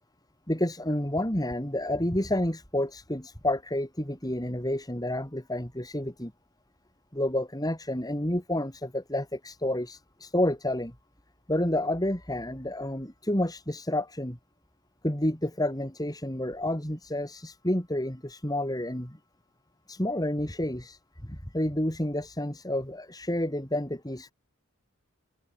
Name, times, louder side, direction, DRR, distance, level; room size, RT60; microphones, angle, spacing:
voice 1, 0.5-6.3 7.1-10.9 11.5-14.4 15.0-19.2 19.9-24.3, left 1 dB, 15° left, 3.5 m, -30 dB
open air
head